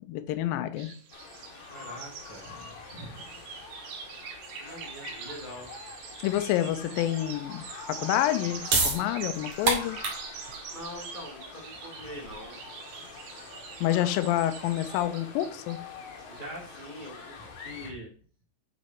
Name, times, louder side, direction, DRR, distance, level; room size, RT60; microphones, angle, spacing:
voice 1, 0.1-0.9 6.2-7.6 7.9-10.0 13.8-15.8, left 13 dB, 80° left, 2.4 m, -28 dB
sound 1, 0.8-17.2, right 7 dB, 80° right, 2.9 m, -44 dB
sound 2, 1.1-17.9, left 5 dB, 60° left, 2.1 m, -45 dB
voice 2, 1.7-3.3 4.6-5.7 10.7-12.6 16.3-18.1, equal, 30° left, 0.8 m, -43 dB
sound 3, 8.3-15.0, right 4 dB, 50° right, 2.7 m, -32 dB
8.3 x 4.7 x 4.3 m
omnidirectional pair, 4.3 m